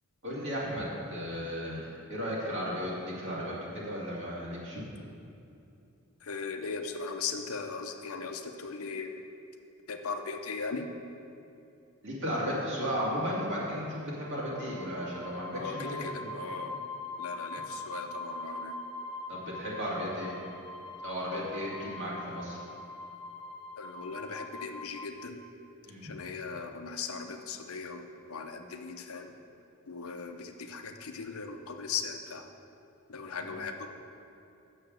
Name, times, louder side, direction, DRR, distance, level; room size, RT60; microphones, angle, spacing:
voice 1, 0.2-4.8 12.0-16.3 19.3-20.3 21.0-22.6 25.9-26.1 33.4-33.5, equal, 60° right, -5 dB, 2.4 m, -35 dB
voice 2, 6.2-9.1 9.9-10.9 15.5-16.8 17.2-18.8 23.8-25.4 26.0-29.3 29.9-32.4 33.1-33.9, left 5 dB, 70° left, 5 dB, 0.7 m, -38 dB
sound 1, 14.2-25.0, left 2 dB, 20° left, 0.9 m, -42 dB
6.9 x 6.4 x 7.5 m, 2.7 s
head